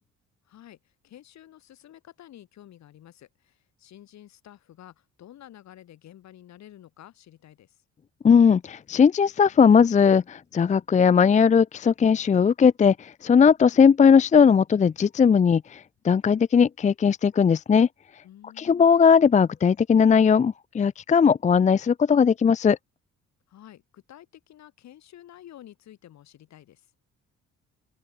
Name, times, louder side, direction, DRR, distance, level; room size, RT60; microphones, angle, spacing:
voice 1, 0.4-7.8 18.2-18.9 23.5-26.9, left 12 dB, 70° left, 6.6 m, -50 dB
voice 2, 8.2-17.9 18.6-22.8, left 6 dB, 25° left, 0.6 m, -18 dB
open air
cardioid pair, 135°, 29 cm